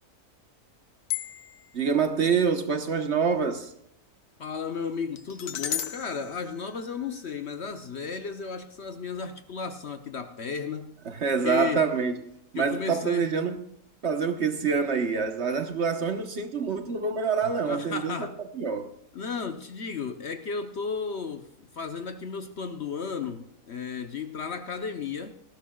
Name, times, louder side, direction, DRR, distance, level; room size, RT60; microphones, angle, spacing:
sound 1, 1.1-1.7 5.2-7.4, left 10 dB, 80° left, 1.4 m, -35 dB
voice 1, 1.7-3.7 11.1-12.2 12.5-13.7 14.0-18.3 18.5-18.9, right 6 dB, 50° right, 1.3 m, -26 dB
voice 2, 4.4-11.0 11.4-11.8 12.6-13.3 17.6-18.4 19.1-25.4, left 5 dB, 55° left, 0.9 m, -34 dB
18.5 x 15.0 x 2.3 m
omnidirectional pair, 1.6 m